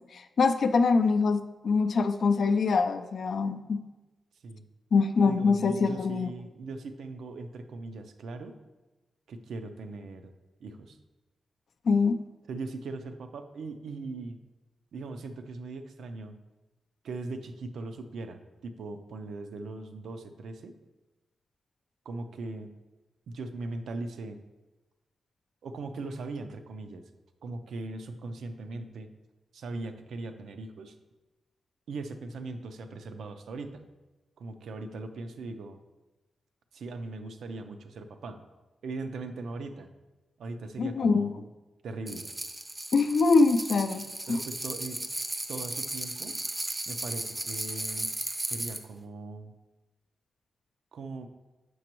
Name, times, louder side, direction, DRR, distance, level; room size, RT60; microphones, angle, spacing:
voice 1, 0.1-3.8 4.9-6.3 11.9-12.2 40.8-41.3 42.9-44.1, left 4 dB, 60° left, 8 dB, 0.3 m, -24 dB
voice 2, 5.2-8.6 9.3-10.3 10.6-11.0 12.5-14.4 14.9-16.4 17.0-20.8 22.1-22.8 23.3-24.4 25.6-27.0 27.4-29.1 29.5-30.9 31.9-33.9 34.4-35.8 36.7-38.4 38.8-39.9 40.4-41.5 41.8-42.3 44.3-45.0 45.5-46.4 46.9-48.1 48.4-49.5 50.9-51.3, right 3 dB, 90° right, 8 dB, 0.5 m, -39 dB
sound 1, 42.1-48.8, right 1 dB, 15° right, 0.5 m, -35 dB
7.7 x 5.9 x 3.0 m, 1.1 s
wide cardioid pair, 140°, 0 cm